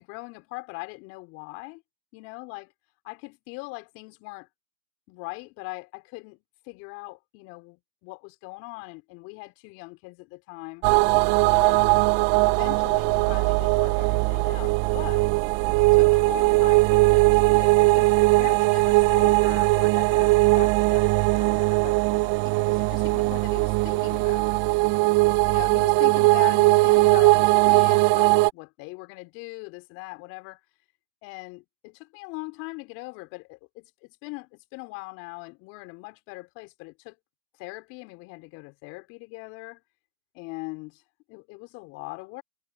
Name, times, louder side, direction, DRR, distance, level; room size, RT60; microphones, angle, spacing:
voice 1, 0.0-1.8 2.1-2.7 3.0-4.5 5.1-10.9 11.5-12.1 12.4-15.3 15.8-24.5 25.4-30.6 31.2-37.2 37.6-39.8 40.3-41.0 41.3-42.4, left 26 dB, 35° left, 5.3 m, -41 dB
sound 1, 10.8-28.5, right 24 dB, 30° right, 0.8 m, -20 dB
hypercardioid pair, 135°, 38 cm